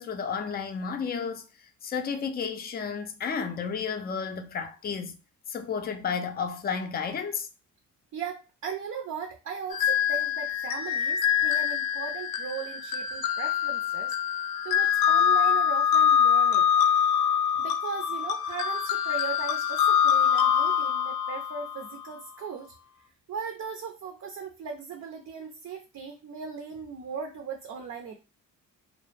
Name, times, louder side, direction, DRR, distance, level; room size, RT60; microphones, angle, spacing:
voice 1, 0.0-1.5 1.8-5.2 5.5-7.5, left 6 dB, 25° left, 0.4 m, -32 dB
voice 2, 8.1-14.1 14.6-16.7 17.5-22.7 23.3-28.1, right 6 dB, 50° right, 0.6 m, -38 dB
sound 1, 9.7-22.1, left 8 dB, 75° left, 0.5 m, -25 dB
2.2 x 2.1 x 3.2 m
cardioid pair, 80°, 36 cm